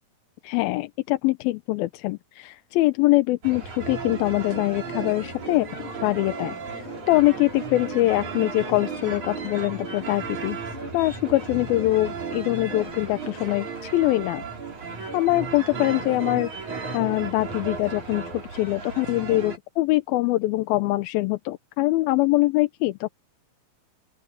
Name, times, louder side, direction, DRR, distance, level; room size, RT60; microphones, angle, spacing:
voice 1, 0.4-10.6 10.9-14.4 15.1-16.5 16.9-23.1, left 18 dB, 90° left, 2.6 m, -23 dB
sound 1, 3.4-19.6, right 4 dB, 50° right, 6.5 m, -35 dB
sound 2, 4.9-13.5, left 3 dB, 30° left, 3.2 m, -44 dB
open air
omnidirectional pair, 4.2 m